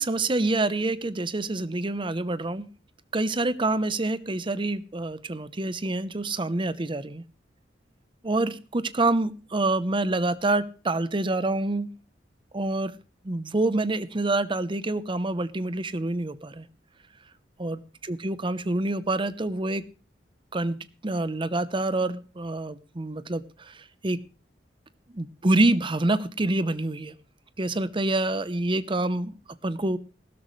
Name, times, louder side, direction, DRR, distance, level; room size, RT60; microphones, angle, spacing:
voice 1, 0.0-2.7 3.1-7.2 8.2-11.9 12.5-12.9 13.2-16.7 17.6-19.8 20.5-20.8 21.0-24.2 25.1-27.2 27.6-29.3 29.6-30.0, right 2 dB, 30° right, 15 dB, 0.8 m, -27 dB
16.0 x 13.0 x 3.2 m, 0.35 s
head